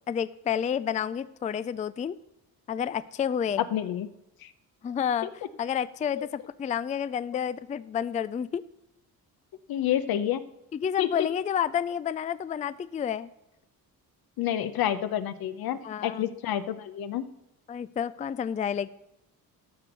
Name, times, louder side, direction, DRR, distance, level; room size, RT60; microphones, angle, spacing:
voice 1, 0.1-2.2 2.7-3.6 4.8-5.3 5.6-8.6 10.7-13.3 15.8-16.2 17.7-18.9, left 8 dB, 20° left, 15 dB, 0.3 m, -30 dB
voice 2, 3.7-4.1 4.4-4.5 6.2-6.3 9.7-10.4 11.0-11.3 14.4-17.2, left 11 dB, 75° left, 12 dB, 0.9 m, -29 dB
13.5 x 6.1 x 6.8 m, 0.89 s
cardioid pair, 110°, 36 cm